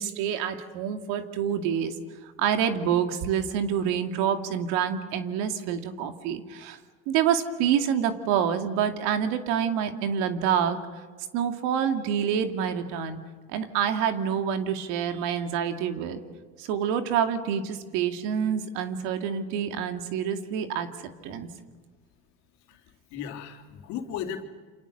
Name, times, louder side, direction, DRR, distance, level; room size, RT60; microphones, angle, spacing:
voice 1, 0.0-1.9 2.2-6.8 7.1-10.8 11.3-13.2 13.5-16.2 16.6-20.9 21.2-21.5, right 8 dB, 70° right, 7 dB, 2.5 m, -27 dB
voice 2, 22.6-24.4, left 8 dB, 65° left, 4 dB, 3.5 m, -36 dB
29.0 x 27.0 x 6.7 m, 1.5 s
supercardioid pair, 105°, 30 cm